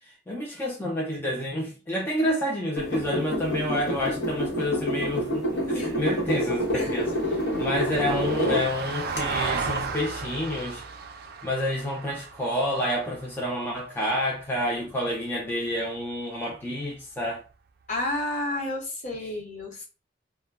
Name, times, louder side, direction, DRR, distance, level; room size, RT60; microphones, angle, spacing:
voice 1, 0.0-10.8 11.4-17.4, left 1 dB, 10° left, 0.4 m, -29 dB
sound 1, 2.8-8.7 9.2-9.3, equal, 75° left, 1.0 m, -28 dB
Vehicle, 4.1-14.5 16.8-16.9, right 5 dB, 55° right, 0.4 m, -36 dB
voice 2, 17.9-19.9, left 1 dB, 40° left, 0.9 m, -31 dB
2.2 x 2.1 x 3.3 m
head